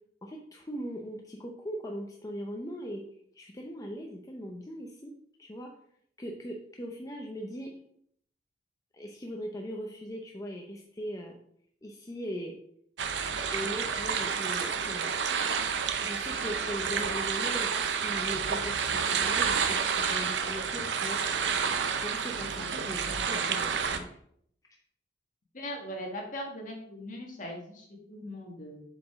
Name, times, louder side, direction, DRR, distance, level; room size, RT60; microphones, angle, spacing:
voice 1, 0.2-3.0 3.3-5.1 5.4-5.7 6.2-7.7 8.9-11.4 11.8-12.5 13.5-15.1 16.0-19.8 20.1-21.2 22.0-24.2, equal, 20° left, 0 dB, 0.6 m, -39 dB
sound 1, 13.0-24.0, right 6 dB, 85° right, 0.7 m, -30 dB
voice 2, 25.5-28.8, equal, 50° left, 0 dB, 1.7 m, -40 dB
7.7 x 5.0 x 3.6 m, 0.67 s
head